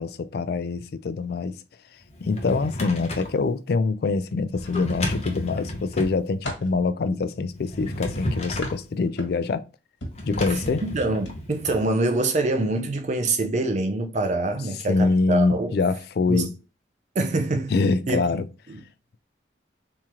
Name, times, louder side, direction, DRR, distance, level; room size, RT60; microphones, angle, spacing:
voice 1, 0.0-1.6 2.2-9.6 10.3-10.8 14.9-16.5 17.7-18.5, left 3 dB, 55° left, 0.3 m, -24 dB
Drawer open or close, 2.1-3.4 4.5-6.2 7.5-8.8 10.1-11.8, left 1 dB, 35° left, 0.7 m, -32 dB
sound 1, 4.6-5.4 5.9-6.8 8.1-9.6 10.0-10.3 11.2-11.4 11.7-11.9, left 1 dB, 85° left, 1.5 m, -38 dB
voice 2, 10.5-15.7 16.3-16.5 17.2-17.7 18.1-18.2 18.7-18.8, right 2 dB, 40° right, 0.4 m, -25 dB
3.6 x 2.9 x 2.9 m
head